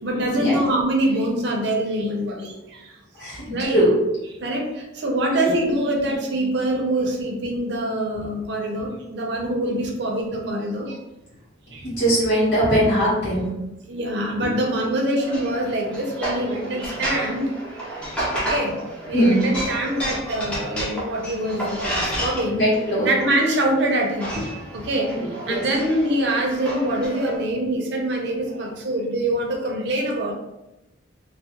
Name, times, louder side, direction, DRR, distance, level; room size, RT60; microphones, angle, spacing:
voice 1, 0.0-2.9 3.5-3.8 4.4-11.0 11.7-11.9 13.9-17.8 18.3-18.7 19.1-22.6 23.0-24.5 24.7-30.4, right 1 dB, 55° right, 0 dB, 0.5 m, -24 dB
voice 2, 3.2-4.0 5.4-5.5 11.8-13.6 19.1-19.4 22.5-23.1 25.5-25.6, right 1 dB, 55° left, -10 dB, 1.0 m, -20 dB
sound 1, 15.2-27.4, right 1 dB, 5° left, 0.5 m, -31 dB
2.2 x 2.1 x 2.8 m, 0.94 s
head